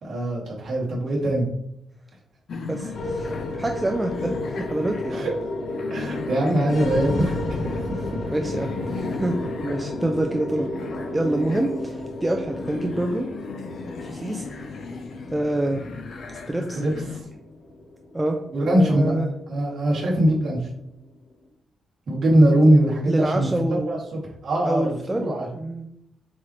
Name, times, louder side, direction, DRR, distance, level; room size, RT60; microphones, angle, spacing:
voice 1, 0.0-1.5 5.1-5.3 5.9-7.4 7.8-8.1 16.7-17.2 18.5-19.1 19.5-20.6 22.1-23.5 23.9-25.5, right 1 dB, 45° right, -6 dB, 2.5 m, -21 dB
sound 1, 2.5-17.2, left 4 dB, 50° left, 0.7 m, -36 dB
voice 2, 2.7-3.3 3.6-5.3 8.3-10.7 11.1-13.3 14.1-14.4 15.3-15.8 16.3-16.8 18.1-18.4 18.8-19.3 23.1-23.9 24.6-25.3 25.5-25.9, right 1 dB, 10° right, 3 dB, 0.4 m, -26 dB
sound 2, 2.9-21.3, left 1 dB, 70° left, 1.3 m, -33 dB
7.6 x 4.4 x 3.2 m, 0.78 s
wide cardioid pair, 180°, 0 cm